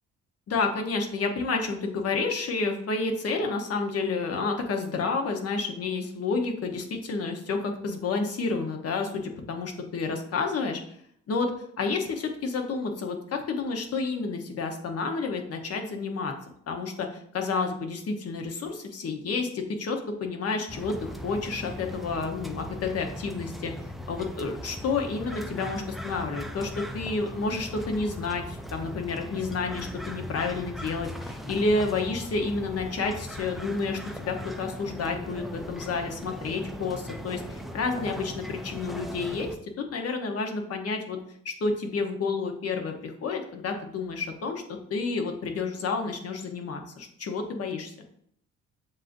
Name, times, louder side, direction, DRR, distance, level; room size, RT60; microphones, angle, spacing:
voice 1, 0.5-10.8 11.3-11.5 11.8-16.3 16.7-23.7 24.1-41.2 41.4-44.6 44.9-47.9, left 4 dB, 55° left, 4 dB, 0.9 m, -30 dB
sound 1, 20.7-39.6, equal, ahead, 0.3 m, -39 dB
7.3 x 2.6 x 2.5 m, 0.67 s
cardioid pair, 90°, 30 cm